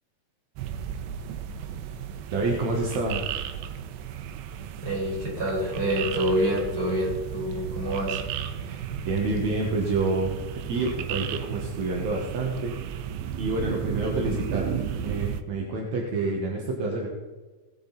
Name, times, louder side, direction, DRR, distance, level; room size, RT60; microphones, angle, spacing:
sound 1, 0.6-15.4, right 9 dB, 85° right, 3.0 m, -34 dB
voice 1, 2.3-3.2 7.5-7.6 8.6-12.8 13.3-17.1, right 3 dB, 60° right, -1 dB, 2.0 m, -28 dB
voice 2, 4.8-8.2, equal, 20° right, -5 dB, 4.9 m, -27 dB
19.0 x 7.9 x 4.0 m, 1.3 s
omnidirectional pair, 4.8 m